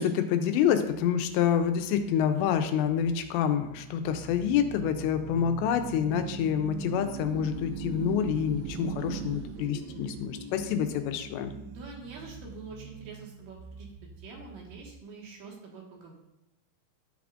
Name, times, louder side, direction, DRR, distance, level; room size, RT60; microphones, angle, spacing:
voice 1, 0.0-11.5, left 8 dB, 85° left, 7 dB, 2.8 m, -27 dB
sound 1, 0.9-15.0, right 6 dB, 80° right, 2.8 m, -42 dB
voice 2, 11.6-13.9 14.2-16.1, right 4 dB, 60° right, -1 dB, 2.9 m, -45 dB
13.0 x 6.9 x 2.5 m, 0.86 s
omnidirectional pair, 5.2 m